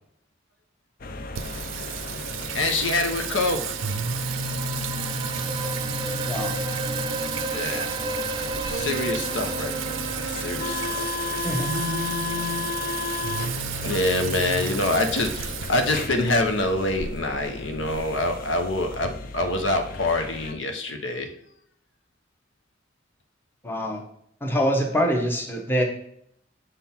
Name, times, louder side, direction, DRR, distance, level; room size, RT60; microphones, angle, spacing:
sound 1, 1.0-20.5, left 3 dB, 50° left, 0.5 m, -35 dB
Singing, 1.4-19.0, right 5 dB, 90° right, 0.5 m, -32 dB
voice 1, 2.5-3.8 7.5-8.0 8.6-11.1 13.8-21.3, left 2 dB, 80° left, 5 dB, 0.8 m, -26 dB
sound 2, 3.8-12.6, right 2 dB, 25° right, 0.4 m, -34 dB
voice 2, 23.6-24.0 24.4-25.8, equal, 10° left, 1 dB, 1.0 m, -24 dB
6.9 x 3.8 x 4.3 m, 0.69 s
head